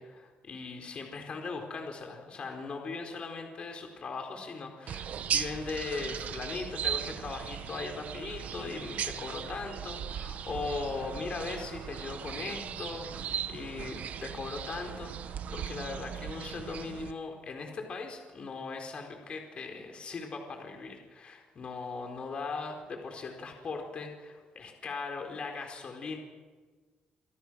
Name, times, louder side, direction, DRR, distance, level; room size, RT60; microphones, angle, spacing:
voice 1, 0.0-26.2, left 4 dB, 40° left, 3 dB, 4.5 m, -39 dB
sound 1, 4.9-17.1, right 9 dB, 60° right, 1.4 m, -37 dB
28.5 x 26.0 x 6.5 m, 1.4 s
cardioid pair, 130°, 3 cm